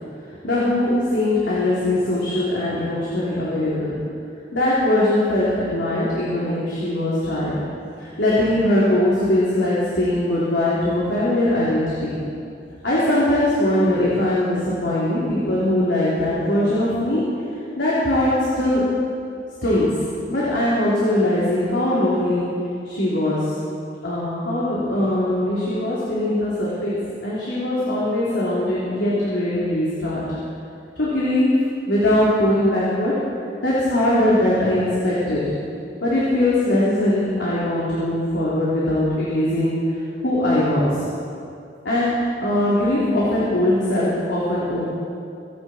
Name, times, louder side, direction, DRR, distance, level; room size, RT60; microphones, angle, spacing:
voice 1, 0.4-4.0 4.5-7.6 8.0-12.1 12.8-17.2 17.8-18.3 18.5-18.8 19.6-19.9 20.3-22.5 22.8-23.5 24.0-30.2 31.0-31.5 31.9-33.1 33.6-35.4 36.0-39.8 40.2-40.9 41.8-42.1 42.4-44.8, left 1 dB, 80° left, -9 dB, 3.5 m, -21 dB
24.5 x 10.5 x 4.5 m, 2.5 s
head